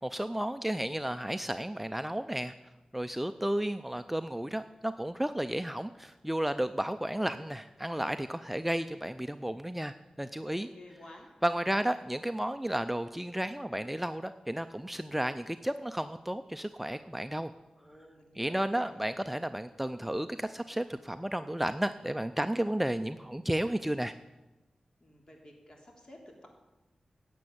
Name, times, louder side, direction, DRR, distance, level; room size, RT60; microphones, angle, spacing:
voice 1, 0.0-2.5 2.9-10.7 11.4-17.5 18.4-24.1, right 1 dB, 5° right, 10 dB, 0.5 m, -33 dB
voice 2, 10.5-11.3 17.8-19.0 25.0-26.5, left 1 dB, 40° left, 0 dB, 3.5 m, -52 dB
10.5 x 7.7 x 8.6 m, 1.1 s
cardioid pair, 50°, 2 cm